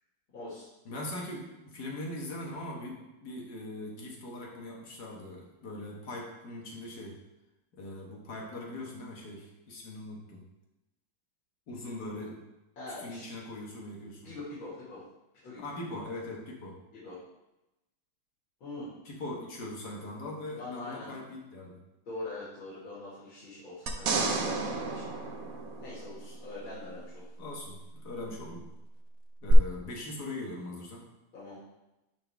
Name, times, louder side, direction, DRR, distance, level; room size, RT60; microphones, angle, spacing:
voice 1, 0.3-0.7 12.8-13.3 14.2-15.0 15.4-15.6 17.0-17.2 18.6-18.9 20.5-21.1 22.1-25.0 25.8-27.3 31.3-31.6, left 2 dB, 90° left, -9 dB, 2.9 m, -43 dB
voice 2, 0.9-7.2 7.7-10.4 11.7-12.4 12.9-14.3 15.6-16.8 19.1-21.8 27.4-28.6 29.4-31.1, left 1 dB, 55° left, -1 dB, 1.8 m, -41 dB
sound 1, 23.9-26.4 29.5-29.6, right 4 dB, 60° right, 1.0 m, -31 dB
11.0 x 3.9 x 3.5 m, 0.96 s
omnidirectional pair, 2.1 m